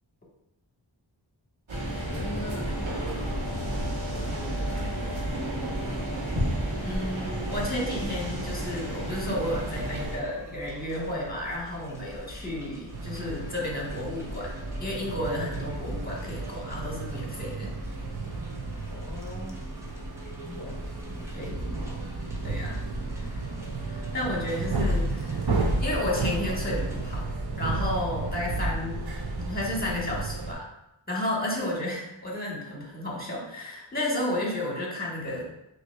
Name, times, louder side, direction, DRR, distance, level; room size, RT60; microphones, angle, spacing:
sound 1, 1.7-10.2, right 1 dB, 90° right, 1.2 m, -31 dB
voice 1, 2.1-3.7 4.1-5.5 18.9-19.6 20.4-22.0, left 1 dB, 35° left, -4 dB, 0.9 m, -42 dB
voice 2, 6.8-14.5 14.8-17.7 21.3-21.5 22.4-22.8 23.2-23.4 23.9-25.5 25.8-27.3 27.6-29.0 29.5-30.6 31.1-35.5, left 1 dB, 20° left, -3 dB, 1.4 m, -32 dB
sound 2, 7.4-27.2, left 1 dB, 5° right, 0.8 m, -44 dB
sound 3, 12.9-30.5, right 2 dB, 55° right, 0.7 m, -32 dB
5.8 x 2.9 x 2.3 m, 0.85 s
wide cardioid pair, 50°, 47 cm